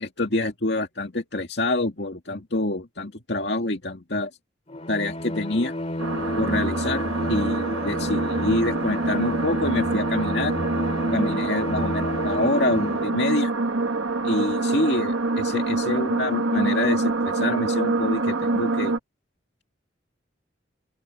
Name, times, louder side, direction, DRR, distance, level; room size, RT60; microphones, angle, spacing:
voice 1, 0.0-4.3 4.9-5.7 6.4-10.5 11.1-13.5 14.2-19.0, left 2 dB, 60° left, 2.3 m, -26 dB
Bowed string instrument, 4.7-13.2, left 1 dB, 35° left, 2.8 m, -31 dB
sound 1, 6.0-19.0, right 3 dB, 90° right, 1.5 m, -26 dB
open air
head